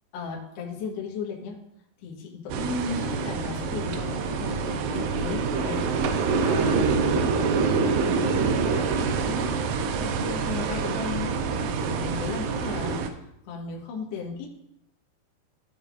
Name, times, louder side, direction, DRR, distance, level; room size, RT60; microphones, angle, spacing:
voice 1, 0.1-1.6 2.0-7.3 7.8-13.0 13.5-14.5, left 4 dB, 70° left, -2 dB, 3.3 m, -36 dB
sound 1, 2.5-13.1, right 5 dB, 80° right, 2.4 m, -26 dB
15.5 x 5.4 x 2.4 m, 0.81 s
omnidirectional pair, 5.3 m